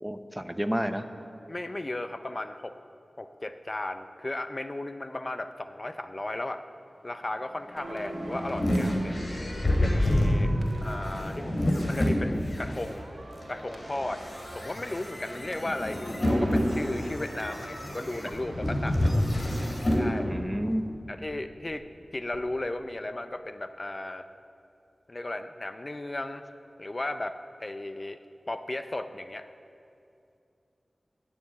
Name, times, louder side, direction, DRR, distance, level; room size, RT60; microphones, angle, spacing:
voice 1, 0.0-1.0 10.4-10.7 20.3-20.8, equal, 10° right, 9 dB, 0.7 m, -31 dB
voice 2, 1.5-2.8 3.2-6.6 7.0-9.1 9.7-10.5 10.8-13.1 13.5-14.2 14.5-19.2 20.0-20.3 21.1-21.8 22.1-24.2 25.1-26.4 26.8-28.2 28.5-29.5, left 2 dB, 40° left, 9 dB, 0.5 m, -35 dB
sound 1, 7.8-12.8 13.4-20.1, left 1 dB, 65° left, 2.6 m, -28 dB
sound 2, 7.8-21.9 22.2-22.4, right 2 dB, 80° right, 1.3 m, -44 dB
12.5 x 7.1 x 8.5 m, 2.6 s
wide cardioid pair, 55°, 0 cm